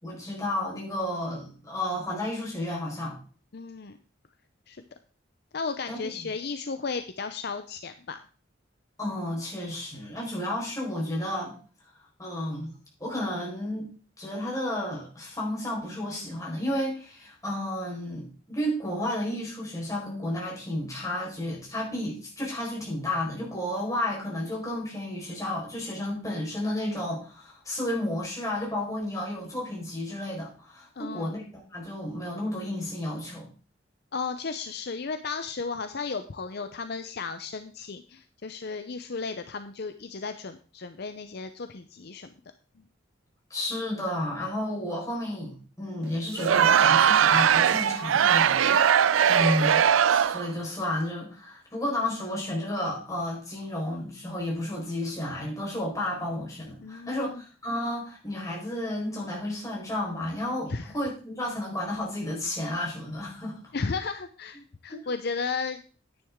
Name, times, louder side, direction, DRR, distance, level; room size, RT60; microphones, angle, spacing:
voice 1, 0.0-3.2 5.9-6.1 9.0-11.6 12.2-12.7 13.0-13.9 14.2-31.4 31.7-33.5 43.5-63.7 64.9-65.1, left 1 dB, 15° left, -3 dB, 4.5 m, -32 dB
voice 2, 3.5-4.0 4.7-4.8 5.5-8.2 31.0-31.3 34.1-42.3 56.8-57.4 60.7-60.9 63.7-65.8, left 4 dB, 55° left, 9 dB, 0.6 m, -34 dB
Crowd, 46.3-50.5, right 8 dB, 90° right, 0.4 m, -20 dB
10.0 x 9.6 x 3.6 m, 0.37 s
head